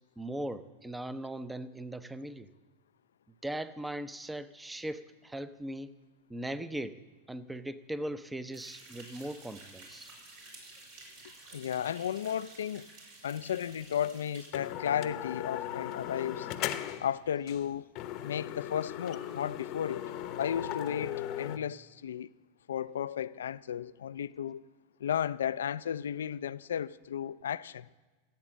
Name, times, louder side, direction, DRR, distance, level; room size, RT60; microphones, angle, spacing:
voice 1, 0.2-2.5 3.4-5.9 6.3-7.0 7.3-10.1, right 1 dB, 10° right, 0.7 m, -39 dB
sound 1, 8.5-14.5, right 3 dB, 65° right, 5.1 m, -52 dB
voice 2, 11.5-12.9 13.2-16.5 17.0-17.9 18.2-20.1 20.4-22.3 22.7-24.6 25.0-27.9, left 9 dB, 85° left, 0.4 m, -34 dB
sound 2, 14.0-14.1 14.5-17.1 17.5-17.6 18.0-21.6, left 12 dB, 50° left, 0.8 m, -38 dB
16.0 x 8.1 x 7.3 m
hypercardioid pair, 105°, 0 cm